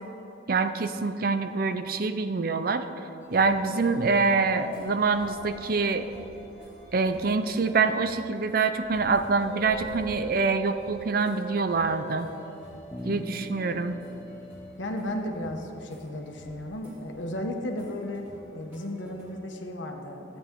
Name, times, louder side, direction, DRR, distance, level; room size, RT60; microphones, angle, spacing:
voice 1, 0.5-2.8 3.3-6.1 6.9-12.3 13.0-14.0, right 4 dB, 50° right, 10 dB, 0.5 m, -25 dB
sound 1, 3.2-19.4, equal, 10° right, 2.3 m, -51 dB
sound 2, 3.5-7.9 9.3-14.7, right 7 dB, 35° left, 2.5 m, -44 dB
Bass guitar, 12.9-16.6, left 1 dB, 15° left, 0.9 m, -43 dB
voice 2, 13.1-13.5 14.8-18.2 18.5-20.4, left 1 dB, 75° left, 3 dB, 1.2 m, -35 dB
14.5 x 8.6 x 3.8 m, 2.9 s
head